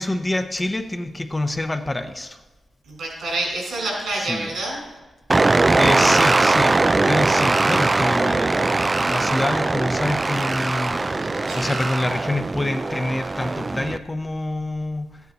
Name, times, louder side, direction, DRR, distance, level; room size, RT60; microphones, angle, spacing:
voice 1, 0.0-2.4 4.1-4.5 5.8-11.3 11.5-15.1, left 1 dB, 15° left, 6 dB, 0.7 m, -26 dB
voice 2, 2.9-4.8 11.2-11.8, right 2 dB, 80° right, 0 dB, 4.7 m, -28 dB
sound 1, 5.3-14.0, right 3 dB, 25° right, 0.3 m, -20 dB
13.5 x 9.4 x 4.0 m, 1.2 s
wide cardioid pair, 105°, 0 cm